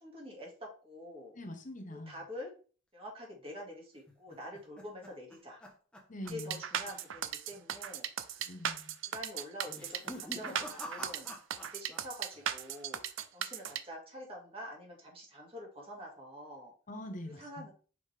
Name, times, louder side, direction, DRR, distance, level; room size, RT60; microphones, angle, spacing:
voice 1, 0.0-1.3 1.9-2.5 2.9-5.6 6.3-8.1 8.3-8.5 9.1-11.4 11.7-13.0 13.3-16.7 17.2-17.7, left 1 dB, 30° right, 2.1 m, -46 dB
voice 2, 1.4-2.1 6.1-6.6 8.5-9.0 16.9-17.7, left 1 dB, 40° left, 1.0 m, -43 dB
sound 1, 4.1-6.6 6.8-7.2 7.5-7.6 8.4-8.8 9.6-12.1 12.3-12.9, left 1 dB, 5° left, 1.1 m, -48 dB
sound 2, 6.3-13.8, right 9 dB, 70° right, 0.5 m, -37 dB
5.7 x 5.0 x 3.4 m
head